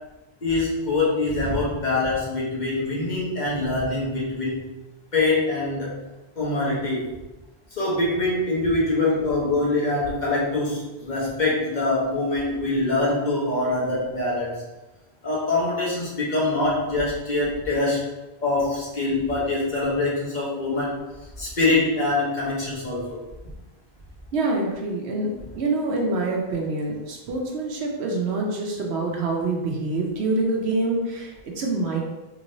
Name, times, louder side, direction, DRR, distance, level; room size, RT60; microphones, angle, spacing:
voice 1, 0.4-4.6 5.1-6.0 6.4-7.1 7.7-14.6 15.2-18.0 18.4-20.9 21.4-23.2, left 2 dB, 45° left, -6 dB, 1.0 m, -24 dB
voice 2, 24.3-32.0, right 2 dB, 85° right, 0 dB, 1.0 m, -26 dB
3.4 x 3.0 x 2.6 m, 1.1 s
omnidirectional pair, 1.1 m